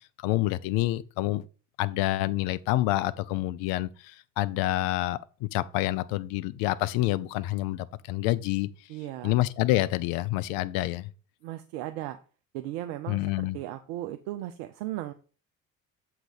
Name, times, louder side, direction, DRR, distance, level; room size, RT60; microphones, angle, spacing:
voice 1, 0.2-1.4 1.8-8.7 9.2-11.1 13.1-13.6, left 16 dB, 60° left, 0.5 m, -27 dB
voice 2, 8.9-9.4 11.4-12.2 12.5-15.1, right 14 dB, 65° right, 0.6 m, -36 dB
7.5 x 3.2 x 5.0 m
hypercardioid pair, 60°, 39 cm